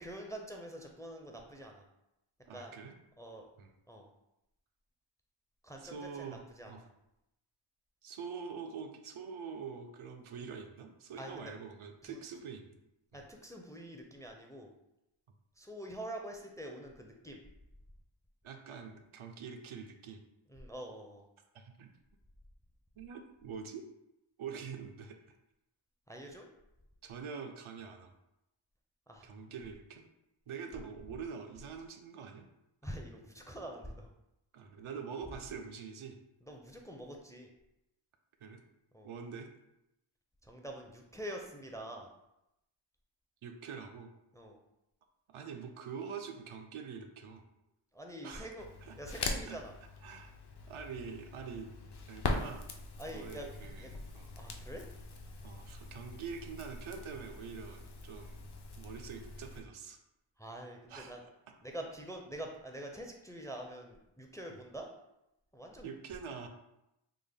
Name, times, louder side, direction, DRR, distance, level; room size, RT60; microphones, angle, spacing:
voice 1, 0.0-1.8 2.5-2.7 3.2-3.5 3.9-4.1 5.6-6.7 11.2-11.5 12.0-12.2 13.1-14.7 15.6-17.4 20.5-21.2 26.1-26.4 29.1-29.3 32.8-34.1 36.4-37.5 38.9-39.1 40.4-42.1 44.3-44.6 47.9-48.7 49.0-49.7 53.0-53.5 53.8-53.9 54.4-54.8 60.4-61.2 61.6-64.9 65.5-65.9, right 1 dB, 5° left, 2 dB, 0.4 m, -45 dB
voice 2, 2.5-2.9 3.6-3.7 5.8-6.8 8.0-12.8 13.1-13.2 18.4-20.2 21.5-21.9 23.0-23.8 24.4-25.2 27.0-28.1 29.2-30.0 30.5-32.5 34.5-36.2 38.4-38.6 39.0-39.5 43.4-44.1 45.3-47.4 48.2-48.5 48.8-49.0 49.5-49.6 50.0-50.4 50.7-51.7 52.1-52.6 53.1-54.3 55.4-58.5 58.8-60.0 60.9-61.1 65.8-66.5, right 6 dB, 75° right, 4 dB, 0.5 m, -45 dB
Crackle, 48.6-59.6, left 3 dB, 55° left, 0.6 m, -42 dB
3.5 x 2.1 x 3.4 m, 0.86 s
wide cardioid pair, 50°, 50 cm